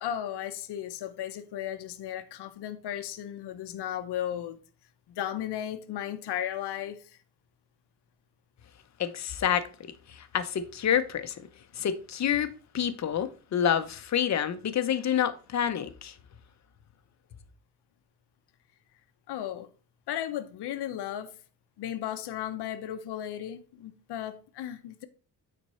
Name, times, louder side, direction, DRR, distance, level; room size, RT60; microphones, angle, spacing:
voice 1, 0.0-4.6 5.1-7.2 19.3-19.7 20.1-21.4 21.8-25.0, left 11 dB, 85° left, 0.9 m, -35 dB
voice 2, 9.0-9.6 10.1-11.4 11.7-16.1, left 9 dB, 45° left, 0.8 m, -28 dB
9.2 x 4.4 x 4.3 m
cardioid pair, 160°, 39 cm